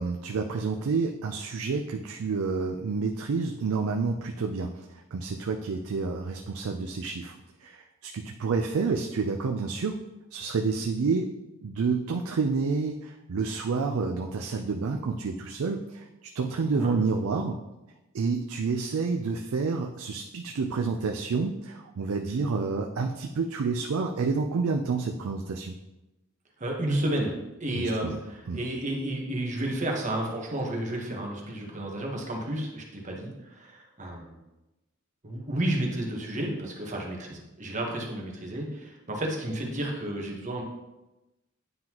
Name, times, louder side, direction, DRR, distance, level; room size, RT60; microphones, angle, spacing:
voice 1, 0.0-7.3 7.6-10.0 10.3-11.3 11.6-17.6 18.1-25.8 27.7-28.2 28.5-28.6, right 4 dB, 75° right, 4 dB, 0.4 m, -29 dB
voice 2, 26.6-34.4 35.2-40.6, right 1 dB, 35° right, 0 dB, 1.2 m, -31 dB
9.4 x 3.8 x 3.0 m, 1.0 s
head